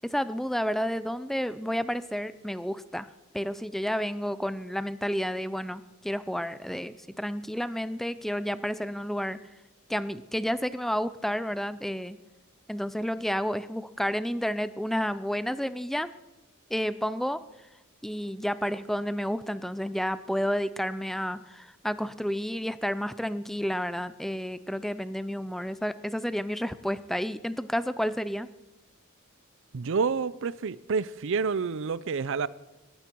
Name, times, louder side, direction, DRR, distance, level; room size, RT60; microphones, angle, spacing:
voice 1, 0.0-3.1 3.3-9.4 9.9-12.2 12.7-16.1 16.7-17.4 18.0-28.5, equal, ahead, 0.5 m, -31 dB
voice 2, 29.7-32.5, right 5 dB, 65° right, 0.5 m, -28 dB
19.5 x 15.0 x 4.6 m
head